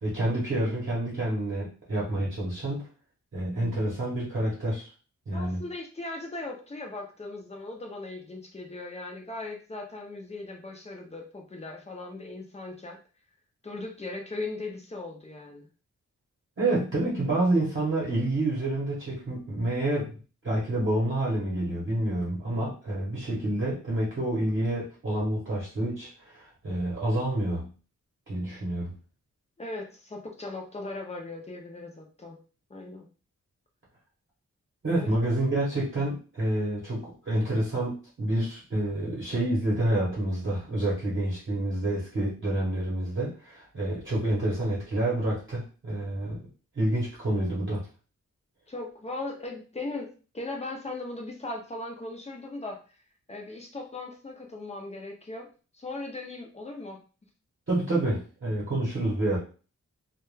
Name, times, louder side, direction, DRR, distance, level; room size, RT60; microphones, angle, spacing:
voice 1, 0.0-2.8 3.3-4.9 5.3-5.7 16.6-20.1 20.4-27.7 28.3-28.9 34.8-46.4 46.8-47.8 57.7-59.4, right 1 dB, 40° right, -6 dB, 0.9 m, -28 dB
voice 2, 5.3-13.0 13.6-15.7 29.6-32.4 32.7-33.1 35.0-35.1 48.7-52.8 53.3-55.5 55.7-57.0, left 2 dB, 20° left, 2 dB, 0.5 m, -38 dB
2.3 x 2.2 x 3.1 m, 0.36 s
wide cardioid pair, 175°, 31 cm